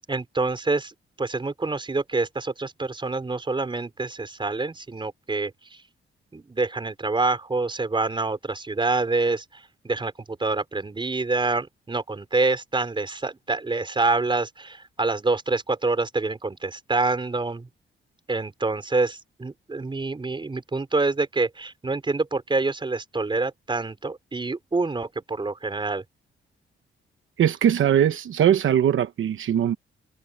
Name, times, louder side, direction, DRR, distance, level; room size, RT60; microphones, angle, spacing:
voice 1, 0.1-5.5 6.3-17.7 18.3-26.0, right 3 dB, 25° right, 4.7 m, -26 dB
voice 2, 27.4-29.7, right 9 dB, 70° right, 1.0 m, -20 dB
cardioid pair, 125°, 21 cm